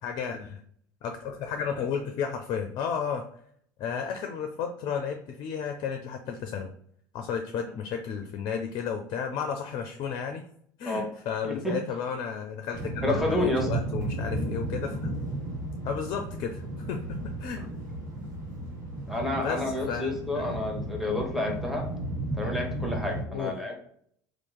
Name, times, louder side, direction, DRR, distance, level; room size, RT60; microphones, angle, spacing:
voice 1, 0.0-0.6 1.0-3.2 3.8-6.7 7.1-10.5 10.8-15.1 15.8-17.6 19.4-20.6 23.3-23.5, left 7 dB, 50° left, 5 dB, 0.4 m, -33 dB
voice 2, 11.4-11.8 13.0-13.7 19.1-21.9 22.4-23.8, left 1 dB, ahead, 0 dB, 1.0 m, -29 dB
sound 1, 12.7-23.2, right 1 dB, 80° right, 1.5 m, -34 dB
2.8 x 2.5 x 3.5 m, 0.64 s
hypercardioid pair, 70°, 10 cm